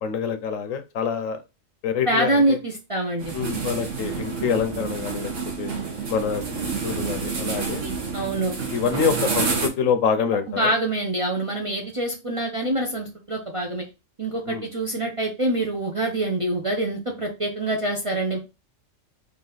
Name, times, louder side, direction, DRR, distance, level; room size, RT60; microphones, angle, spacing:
voice 1, 0.0-1.4 1.8-2.6 3.3-5.3 5.6-5.7 6.1-7.8 8.7-10.7 14.5-14.7, left 6 dB, 80° left, 9 dB, 1.1 m, -26 dB
voice 2, 2.1-3.4 8.1-8.6 10.5-13.8 14.2-18.4, right 1 dB, 35° right, 0 dB, 0.5 m, -25 dB
sound 1, 3.2-9.7, right 4 dB, 65° right, 1.4 m, -29 dB
4.0 x 2.7 x 3.9 m, 0.27 s
omnidirectional pair, 1.4 m